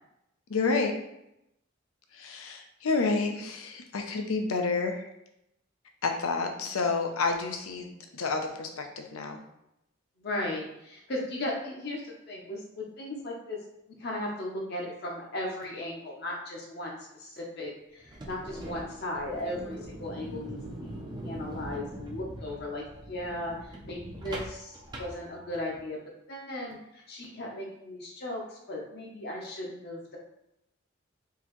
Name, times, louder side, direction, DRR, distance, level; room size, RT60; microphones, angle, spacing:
voice 1, 0.5-0.9 2.1-5.1 6.0-9.4, left 4 dB, 90° left, 4 dB, 0.6 m, -29 dB
voice 2, 10.2-13.6 13.9-26.0 26.3-30.2, left 1 dB, 50° left, -2 dB, 0.7 m, -37 dB
sound 1, 18.0-25.8, right 1 dB, 20° right, 0.5 m, -42 dB
3.7 x 2.9 x 3.0 m, 0.84 s
head